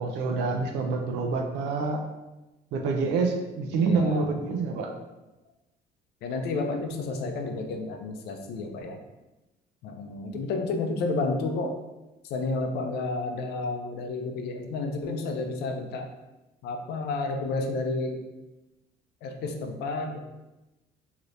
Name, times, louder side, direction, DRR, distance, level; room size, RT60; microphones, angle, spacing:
voice 1, 0.0-2.0 2.7-4.9, right 4 dB, 90° right, 3 dB, 0.5 m, -27 dB
voice 2, 3.7-4.4 6.2-9.0 9.8-11.8 12.2-16.1 16.6-18.2 19.2-20.2, left 3 dB, 75° left, 4 dB, 0.5 m, -31 dB
3.1 x 2.8 x 2.6 m, 1.0 s
cardioid pair, 110°, 17 cm